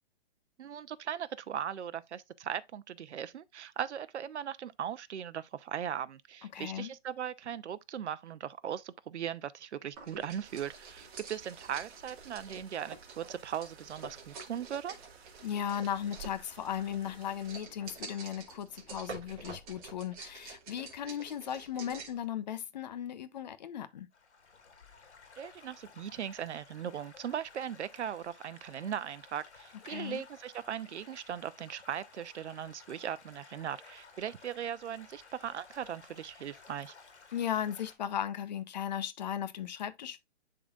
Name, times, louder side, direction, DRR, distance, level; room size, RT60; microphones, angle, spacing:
voice 1, 0.6-15.0 25.4-36.9, right 9 dB, 85° right, 0.7 m, -39 dB
voice 2, 6.5-6.9 15.4-24.1 29.9-30.2 37.3-40.2, left 9 dB, 40° left, 0.8 m, -36 dB
sound 1, 9.9-22.2, right 4 dB, 35° right, 2.3 m, -48 dB
sound 2, 10.4-17.6, right 5 dB, 65° right, 1.6 m, -57 dB
Stream / Gurgling / Trickle dribble, 24.1-37.9, left 4 dB, 90° left, 2.5 m, -56 dB
11.0 x 3.9 x 2.3 m
hypercardioid pair, 160°, 33 cm